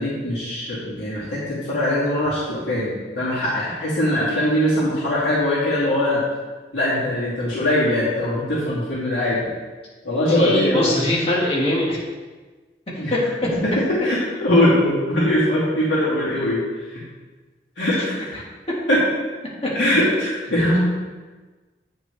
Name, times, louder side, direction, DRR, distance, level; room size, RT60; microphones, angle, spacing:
voice 1, 0.0-6.2 6.7-9.5 10.0-10.9 13.0-13.1 13.6-13.7 14.0-16.6 17.8-18.3 18.9-19.0 19.7-20.8, left 1 dB, 85° left, -9 dB, 2.6 m, -21 dB
voice 2, 10.3-12.0 13.1-13.2, left 1 dB, 35° left, -5 dB, 1.8 m, -21 dB
9.1 x 5.9 x 3.4 m, 1.3 s
head